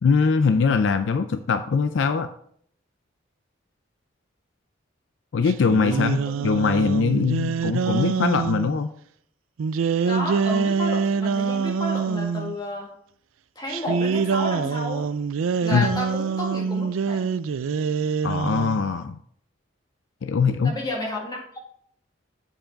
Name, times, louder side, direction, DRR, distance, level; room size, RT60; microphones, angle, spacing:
voice 1, 0.0-2.3 5.3-8.9 15.7-15.9 18.2-19.2 20.2-20.7, left 5 dB, 65° left, 10 dB, 0.4 m, -22 dB
sound 1, 5.5-8.7 9.6-12.6 13.7-18.9, right 6 dB, 85° right, 0.4 m, -25 dB
voice 2, 5.9-6.5 10.0-12.9 13.5-15.1 15.6-17.3 20.6-21.6, left 1 dB, 20° left, -2 dB, 1.9 m, -32 dB
7.7 x 4.8 x 5.1 m, 0.64 s
head